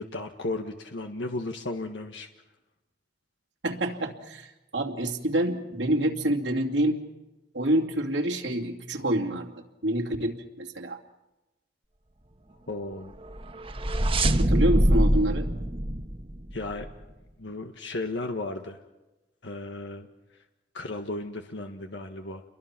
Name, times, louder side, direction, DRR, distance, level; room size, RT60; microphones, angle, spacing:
voice 1, 0.0-2.3 12.7-13.1 16.5-16.9 17.4-18.8 19.4-20.1 20.7-22.4, left 2 dB, 80° left, 5 dB, 1.6 m, -34 dB
voice 2, 3.6-7.0 7.5-9.5 9.8-11.0 14.4-15.5, right 1 dB, 85° right, 0 dB, 2.6 m, -27 dB
sound 1, 13.2-16.9, right 1 dB, 30° right, 1.3 m, -24 dB
29.5 x 23.0 x 6.1 m, 1.0 s
head